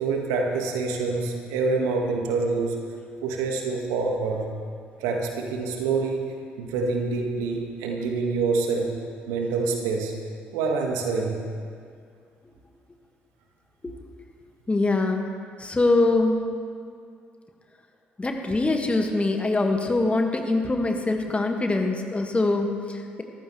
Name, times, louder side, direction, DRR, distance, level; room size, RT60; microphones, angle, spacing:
voice 1, 0.0-2.8 3.2-4.5 5.0-6.2 6.6-8.9 9.3-10.1 10.5-11.4, right 4 dB, 70° right, 1 dB, 1.8 m, -26 dB
voice 2, 14.7-15.3 15.6-16.4 18.2-23.2, left 2 dB, 20° left, 3 dB, 1.9 m, -23 dB
23.0 x 14.5 x 3.3 m, 2.2 s
figure-of-eight pair, 45°, 6 cm